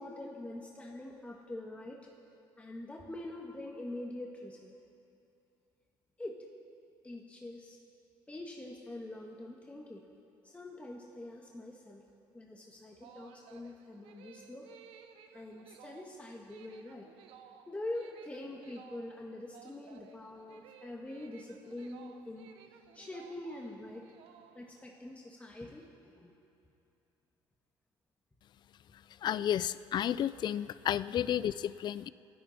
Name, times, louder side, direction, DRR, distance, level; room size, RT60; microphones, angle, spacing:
voice 1, 0.0-2.0 2.6-4.7 6.2-6.4 7.0-7.8 8.3-10.0 10.4-12.0 12.3-14.7 15.3-17.1 17.7-22.5 22.9-24.1 24.5-26.5, left 1 dB, 15° left, -1 dB, 1.7 m, -44 dB
sound 1, 12.8-24.9, right 8 dB, 80° right, 1.2 m, -57 dB
voice 2, 29.2-32.1, left 10 dB, 50° left, 17 dB, 0.4 m, -32 dB
29.5 x 11.0 x 4.3 m, 2.9 s
cardioid pair, 100°, 9 cm